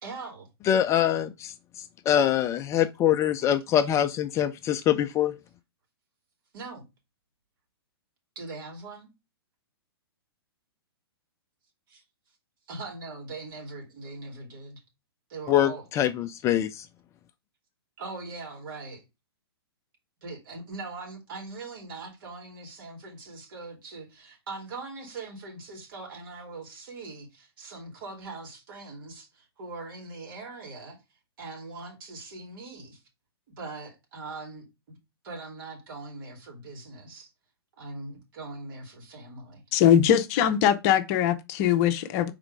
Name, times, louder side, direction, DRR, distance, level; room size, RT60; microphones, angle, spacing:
voice 1, 0.0-0.5 6.5-6.9 8.3-9.1 11.9-12.0 12.7-14.8 15.3-15.8 18.0-19.0 20.2-31.0 31.4-33.0 33.5-35.0 35.2-37.3 37.8-39.6, right 3 dB, 55° right, 2.9 m, -41 dB
voice 2, 0.7-1.5 2.1-5.3 15.5-16.8, left 10 dB, 20° left, 0.4 m, -24 dB
voice 3, 39.7-42.3, left 10 dB, 40° left, 0.8 m, -21 dB
5.0 x 4.1 x 4.7 m
hypercardioid pair, 120°, 13 cm